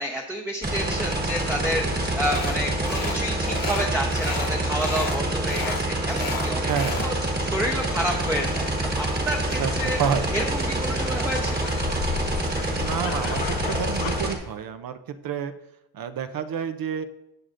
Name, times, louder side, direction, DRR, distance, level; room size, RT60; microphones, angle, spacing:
voice 1, 0.0-6.7 7.0-7.1 7.4-10.0 10.3-11.8, equal, 5° right, -1 dB, 0.7 m, -29 dB
sound 1, 0.6-14.3, right 2 dB, 20° right, 1.3 m, -27 dB
sound 2, 2.2-2.6 2.9-3.2 3.4-4.5 4.8-5.2 5.5-7.1, left 4 dB, 50° left, 1.3 m, -33 dB
voice 2, 6.6-7.1 9.6-10.4 12.7-15.0 15.2-15.5 15.9-17.0, right 7 dB, 50° right, 10 dB, 0.5 m, -29 dB
sound 3, 7.9-14.2, left 9 dB, 85° left, 0.6 m, -36 dB
17.5 x 6.3 x 2.5 m, 0.88 s
wide cardioid pair, 160°, 44 cm